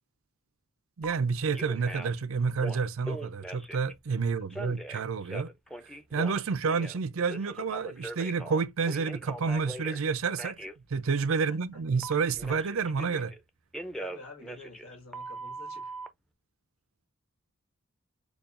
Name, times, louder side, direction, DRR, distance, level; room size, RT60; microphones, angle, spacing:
Telephone, 1.0-1.1 1.5-2.2 2.5-3.9 4.5-7.0 7.3-10.0 10.4-10.7 12.0-13.4 13.7-16.1, right 1 dB, ahead, 0.5 m, -40 dB
voice 1, 1.0-5.5 6.1-10.6 10.9-13.3, right 5 dB, 70° right, 0.5 m, -29 dB
voice 2, 13.9-15.9, left 3 dB, 85° left, 1.8 m, -49 dB
6.9 x 2.3 x 2.5 m
head